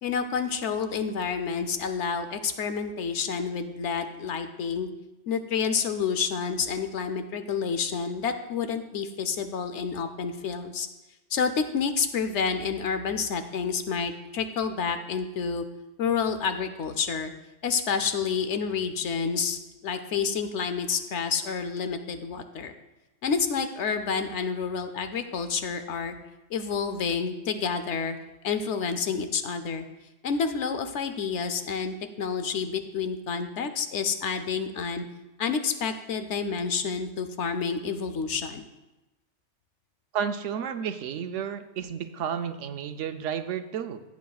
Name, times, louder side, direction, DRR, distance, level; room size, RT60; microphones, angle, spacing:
voice 1, 0.0-4.9 5.3-10.9 11.3-15.6 16.0-17.3 17.6-22.7 23.2-26.2 26.5-28.2 28.4-29.8 30.2-35.0 35.4-38.7, left 6 dB, 75° left, 9 dB, 1.0 m, -29 dB
voice 2, 40.1-44.0, right 8 dB, 85° right, 9 dB, 1.0 m, -32 dB
16.0 x 8.3 x 2.3 m, 1.0 s
omnidirectional pair, 1.2 m